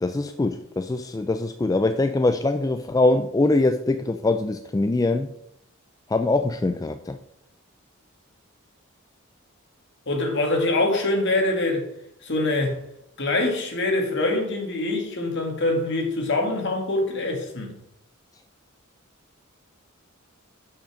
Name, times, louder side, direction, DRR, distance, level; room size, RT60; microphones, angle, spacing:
voice 1, 0.0-5.3 6.1-7.2, left 2 dB, 15° left, 0.3 m, -23 dB
voice 2, 10.1-11.9 12.2-12.8 13.2-17.7, left 2 dB, 55° left, 2.1 m, -24 dB
6.5 x 5.8 x 6.2 m
head